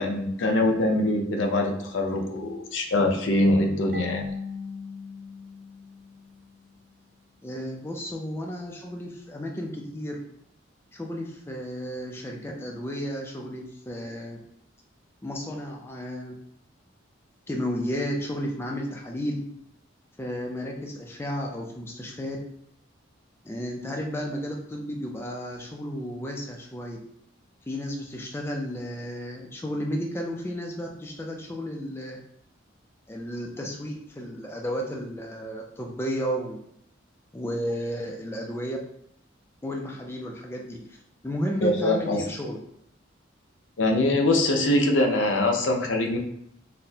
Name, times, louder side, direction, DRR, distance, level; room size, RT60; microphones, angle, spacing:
voice 1, 0.0-4.3 41.6-42.2 43.8-46.2, left 1 dB, 80° left, 3 dB, 0.6 m, -23 dB
Marimba xylophone / Wood, 3.9-6.7, left 5 dB, 45° right, 0.7 m, -38 dB
voice 2, 7.4-10.2 10.9-14.4 15.2-16.3 17.5-19.4 20.2-22.4 23.4-27.0 27.7-32.2 33.1-36.6 37.3-38.8 39.6-42.6, equal, 15° left, 0 dB, 0.4 m, -33 dB
4.1 x 2.1 x 2.7 m, 0.72 s
head